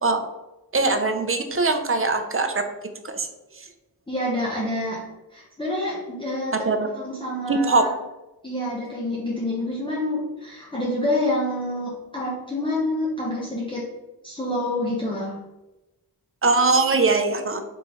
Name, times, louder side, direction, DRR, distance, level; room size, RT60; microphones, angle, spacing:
voice 1, 0.7-2.6 3.0-3.3 6.6-6.9 7.5-7.9 16.4-17.6, right 3 dB, 35° right, 6 dB, 0.6 m, -21 dB
voice 2, 4.1-5.1 5.3-6.6 7.0-7.9 8.4-13.8 14.2-15.4, left 1 dB, 15° left, -7 dB, 1.0 m, -27 dB
3.8 x 3.1 x 3.7 m, 1.0 s
wide cardioid pair, 65°, 40 cm